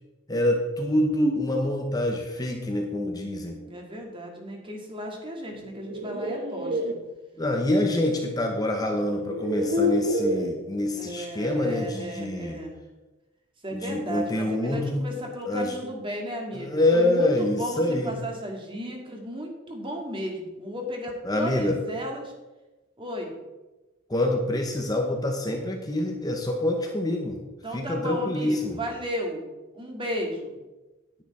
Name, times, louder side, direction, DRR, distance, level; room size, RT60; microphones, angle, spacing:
voice 1, 0.3-3.6 7.4-12.6 13.7-15.0 15.5-15.7 16.5-18.1 21.3-21.7 24.1-27.4 27.7-28.8, left 1 dB, 20° left, 2 dB, 1.0 m, -26 dB
voice 2, 3.7-7.0 10.9-12.7 13.6-22.3 23.0-23.4 27.6-29.5 29.7-30.5, equal, 25° right, 1 dB, 2.1 m, -34 dB
sound 1, 5.6-6.9 8.4-8.5 9.2-10.6, left 1 dB, 65° right, 1.3 m, -27 dB
10.0 x 9.6 x 4.3 m, 1.1 s
head